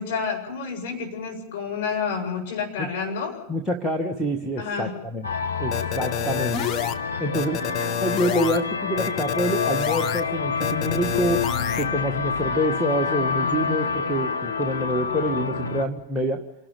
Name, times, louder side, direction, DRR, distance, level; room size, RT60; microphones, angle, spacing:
voice 1, 0.0-3.3 4.6-4.9, left 5 dB, 50° left, 0 dB, 7.8 m, -29 dB
voice 2, 3.5-5.3 5.6-6.6 7.2-7.6 8.0-11.4 11.8-16.4, equal, ahead, -1 dB, 1.5 m, -26 dB
sound 1, 5.2-15.8, left 5 dB, 70° left, 1.5 m, -28 dB
sound 2, 5.7-6.9 7.3-8.6 9.0-10.2 10.6-11.8, left 9 dB, 30° left, 1.2 m, -28 dB
27.5 x 12.5 x 8.9 m, 0.89 s
figure-of-eight pair, 90°, 0 cm